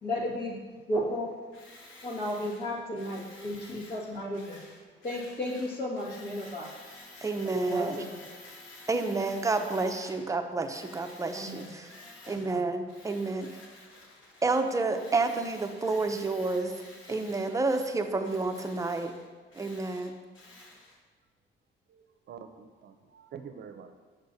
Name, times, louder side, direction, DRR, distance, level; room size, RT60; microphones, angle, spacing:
voice 1, 0.0-0.6 0.9-1.3 2.0-4.6 5.0-6.7 7.4-8.2 11.3-11.7 12.3-12.6, left 1 dB, 55° left, -4 dB, 1.9 m, -34 dB
Tools, 1.5-10.3 10.6-12.6 12.9-21.0, left 2 dB, 80° left, 1.2 m, -51 dB
voice 2, 7.2-8.0 8.9-11.9 12.3-13.5 14.4-16.8 17.1-19.1 19.5-20.1, right 3 dB, 15° right, 6 dB, 0.5 m, -29 dB
voice 3, 21.9-23.9, right 7 dB, 60° right, 8 dB, 0.6 m, -47 dB
6.6 x 6.4 x 2.7 m, 1.4 s
cardioid pair, 90°, 20 cm